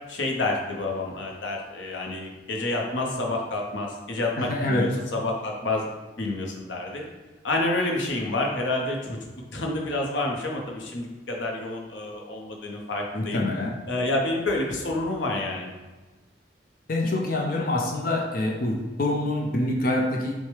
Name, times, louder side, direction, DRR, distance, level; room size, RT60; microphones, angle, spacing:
voice 1, 0.1-5.9 6.2-7.0 7.4-9.2 9.5-13.5 13.9-15.7, left 2 dB, 85° left, 0 dB, 0.8 m, -28 dB
voice 2, 4.4-4.9 13.3-13.8 16.9-20.3, left 1 dB, 50° left, 1 dB, 0.5 m, -25 dB
6.3 x 2.1 x 3.2 m, 1.2 s
head